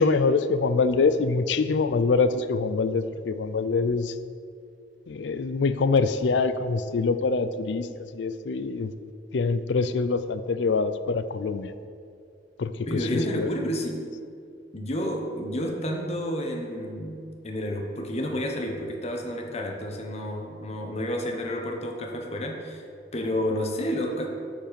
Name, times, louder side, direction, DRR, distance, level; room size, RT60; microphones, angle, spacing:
voice 1, 0.0-4.1 5.1-7.9 8.1-8.9 9.3-11.7 12.6-13.5, left 4 dB, 80° left, 12 dB, 0.4 m, -24 dB
voice 2, 12.9-14.0 14.7-22.8 23.1-24.3, equal, 35° left, 2 dB, 1.0 m, -30 dB
9.0 x 5.2 x 6.8 m, 2.4 s
head